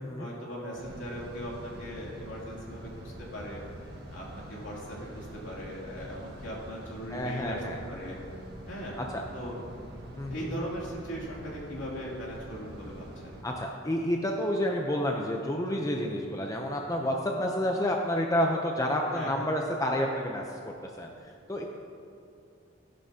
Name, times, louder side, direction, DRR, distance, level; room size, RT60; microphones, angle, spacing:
voice 1, 0.2-3.6 4.1-7.6 7.9-8.2 8.7-9.0 9.3-9.9 10.3-13.4 19.1-19.5, equal, 65° left, -5 dB, 2.8 m, -39 dB
sound 1, 0.7-13.4, right 1 dB, 55° right, 1.6 m, -45 dB
voice 2, 7.1-7.8 9.1-9.2 10.2-10.5 13.4-20.4 21.0-21.1 21.5-21.6, equal, 15° left, 1 dB, 0.6 m, -29 dB
16.0 x 10.5 x 2.8 m, 2.5 s
head